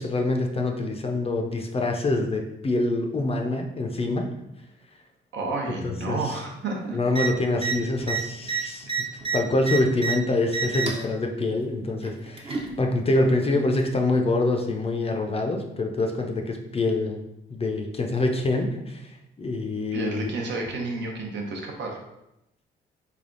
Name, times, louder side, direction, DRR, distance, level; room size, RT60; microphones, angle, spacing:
voice 1, 0.0-4.3 5.7-6.4 6.9-17.2 17.5-20.3, left 2 dB, 30° left, 3 dB, 0.5 m, -26 dB
voice 2, 5.3-7.0 19.9-22.0, right 3 dB, 65° right, 1 dB, 0.8 m, -31 dB
sound 1, 7.1-7.3 7.6-7.7 8.0-10.1 10.5-11.0 12.0-12.7 13.8-13.9, right 6 dB, 30° right, 0.6 m, -28 dB
3.3 x 2.3 x 3.8 m, 0.88 s
cardioid pair, 90°, 20 cm